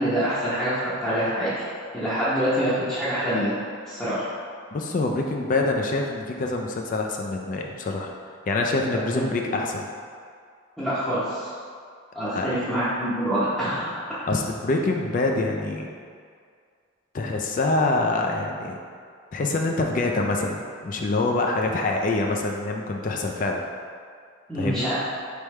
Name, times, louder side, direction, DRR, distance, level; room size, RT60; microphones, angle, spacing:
voice 1, 0.0-1.5 1.9-3.5 3.9-4.2 9.1-9.5 10.8-11.5 12.1-13.9 24.5-24.9, equal, ahead, -15 dB, 0.7 m, -25 dB
voice 2, 4.7-8.1 8.5-9.9 12.4-12.5 14.3-15.9 17.1-18.8 19.3-23.6 24.6-24.9, left 2 dB, 40° left, 1 dB, 0.3 m, -25 dB
4.5 x 3.4 x 3.1 m, 2.2 s
head